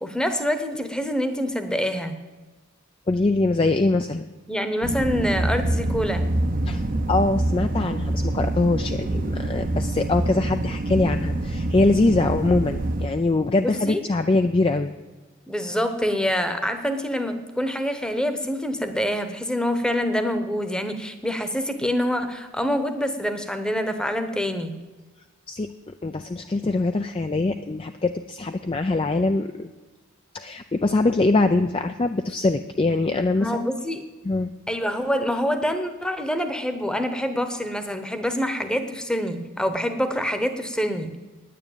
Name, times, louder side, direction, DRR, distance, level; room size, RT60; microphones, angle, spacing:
voice 1, 0.0-2.1 4.5-6.3 13.6-14.0 15.5-24.7 33.4-34.0 34.7-41.1, equal, 5° left, 9 dB, 0.9 m, -26 dB
voice 2, 3.1-4.3 6.7-14.9 25.5-25.7 26.0-29.7 30.3-33.5 34.2-34.5, left 2 dB, 25° left, 7 dB, 0.3 m, -23 dB
sound 1, 4.8-13.1, right 1 dB, 35° right, 0.7 m, -26 dB
9.7 x 9.4 x 8.9 m, 1.3 s
head